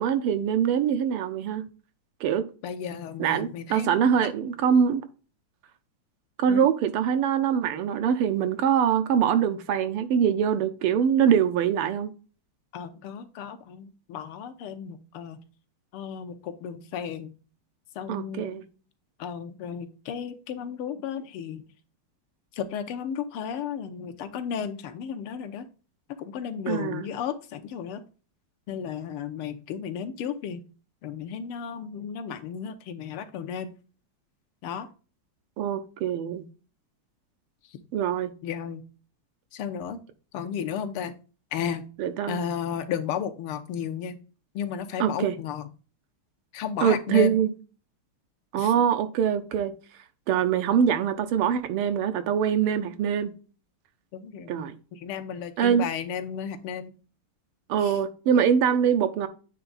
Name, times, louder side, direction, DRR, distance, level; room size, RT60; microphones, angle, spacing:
voice 1, 0.0-1.6 2.2-2.5 3.2-5.0 6.4-12.1 18.1-18.6 26.7-27.1 35.6-36.5 37.9-38.3 42.0-42.4 45.0-45.4 46.8-47.5 48.5-49.7 50.3-53.3 54.5-54.8 55.6-55.9 57.7-59.3, right 8 dB, 90° right, 1.7 m, -23 dB
voice 2, 2.6-4.3 6.5-6.7 12.7-15.4 15.9-17.3 17.9-18.6 19.2-21.6 22.5-25.7 26.2-28.0 28.7-30.6 31.0-33.7 34.6-34.9 37.6-37.8 38.4-38.8 39.5-40.0 40.3-41.1 41.5-41.9 42.3-44.2 44.5-45.7 46.5-47.4 48.6-48.7 54.1-56.9 57.8-58.0, left 8 dB, 85° left, 1.7 m, -34 dB
8.6 x 3.4 x 3.9 m
omnidirectional pair, 2.4 m